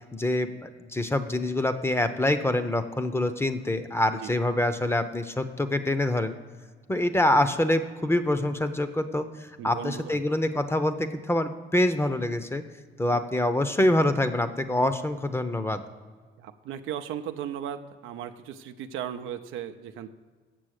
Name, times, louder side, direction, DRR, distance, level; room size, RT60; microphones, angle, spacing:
voice 1, 0.1-6.4 6.9-12.6 13.0-15.8, left 1 dB, 10° left, 10 dB, 0.6 m, -25 dB
voice 2, 9.6-10.2 13.1-13.2 16.4-20.1, right 9 dB, 85° right, 9 dB, 0.6 m, -36 dB
7.7 x 6.7 x 6.4 m, 1.5 s
cardioid pair, 90°, 20 cm